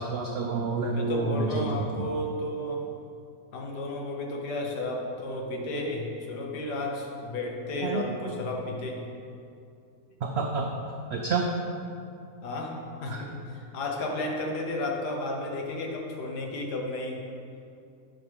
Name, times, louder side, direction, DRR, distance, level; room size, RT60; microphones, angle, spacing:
voice 1, 0.0-2.1 7.8-8.0 10.2-10.7 11.1-11.6 13.1-13.2, right 3 dB, 85° right, 1 dB, 0.5 m, -29 dB
voice 2, 0.6-2.9 3.5-9.1 12.4-17.3, left 1 dB, 85° left, 0 dB, 1.5 m, -33 dB
9.5 x 5.4 x 3.4 m, 2.5 s
omnidirectional pair, 1.7 m